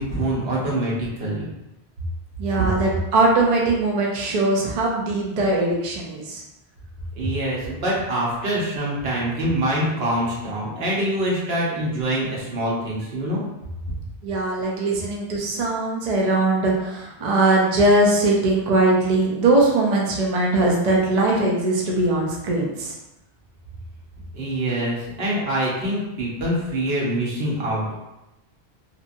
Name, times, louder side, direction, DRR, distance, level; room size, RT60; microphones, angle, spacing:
voice 1, 0.0-1.5 2.6-2.7 7.2-13.4 24.3-27.9, right 1 dB, 70° right, -5 dB, 1.1 m, -25 dB
voice 2, 2.4-6.4 14.2-23.0, right 2 dB, 50° right, -2 dB, 0.5 m, -20 dB
2.8 x 2.5 x 2.5 m, 0.94 s
omnidirectional pair, 1.1 m